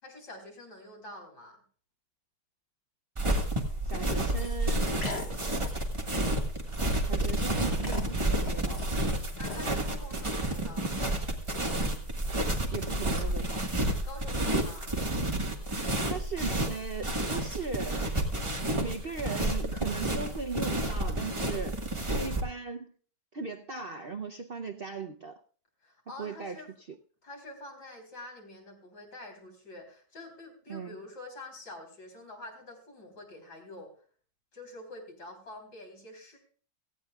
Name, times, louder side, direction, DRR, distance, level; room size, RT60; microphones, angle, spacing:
voice 1, 0.0-1.6 9.4-11.1 14.0-14.9 25.8-26.7 27.2-33.9 34.5-36.4, left 2 dB, 80° left, 1 dB, 4.4 m, -46 dB
sound 1, 3.2-22.4, right 1 dB, 20° right, 1.5 m, -30 dB
voice 2, 3.8-5.0 7.0-8.9 12.7-13.7 16.1-18.0 18.8-21.8 22.1-22.9 23.3-25.4 26.2-27.0 30.7-31.0, right 4 dB, 50° right, 4 dB, 0.7 m, -38 dB
sound 2, 4.4-4.6 5.0-5.3 5.6-5.8 6.4-6.5 6.7-7.2 7.8-8.9 9.3-10.0, left 3 dB, 40° left, 1.8 m, -40 dB
18.0 x 15.0 x 2.4 m, 0.43 s
omnidirectional pair, 1.8 m